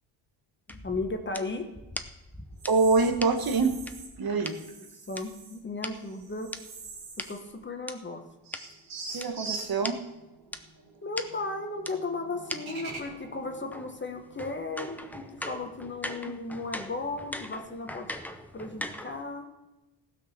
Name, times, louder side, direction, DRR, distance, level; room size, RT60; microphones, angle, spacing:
voice 1, 0.7-1.7 4.9-6.5 7.2-8.3 11.0-18.1 18.5-19.5, left 3 dB, 20° left, 5 dB, 1.2 m, -35 dB
sound 1, 0.7-4.5 5.1-7.9 8.5-8.6 9.2-9.3 9.5-9.6 9.8-10.0 10.5-10.6 11.2-11.3 11.8-11.9 12.5-12.6 12.9-19.2, left 1 dB, 5° left, 0.7 m, -40 dB
sound 2, 2.6-4.1 4.4-5.6 5.9-7.5 7.8-7.9 8.4-15.8, right 4 dB, 70° right, 3.5 m, -45 dB
voice 2, 2.7-3.8 4.2-4.6 9.1-10.0 16.2-16.3, right 4 dB, 45° right, 6 dB, 1.4 m, -25 dB
15.5 x 6.3 x 6.7 m, 1.0 s
cardioid pair, 130°, 50 cm